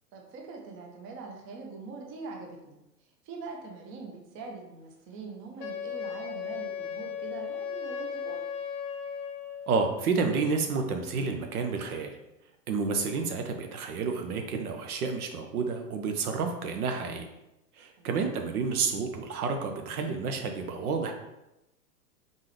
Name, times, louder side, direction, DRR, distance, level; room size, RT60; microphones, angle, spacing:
voice 1, 0.1-8.4 18.0-18.1, right 4 dB, 25° right, 1 dB, 0.7 m, -43 dB
Wind instrument woodwind instrument, 5.6-9.7, left 7 dB, 25° left, 0.8 m, -36 dB
voice 2, 9.7-12.1 12.7-17.3 17.8-21.1, right 4 dB, 60° right, 5 dB, 0.8 m, -30 dB
3.9 x 3.7 x 3.2 m, 0.92 s
hypercardioid pair, 110°, 50 cm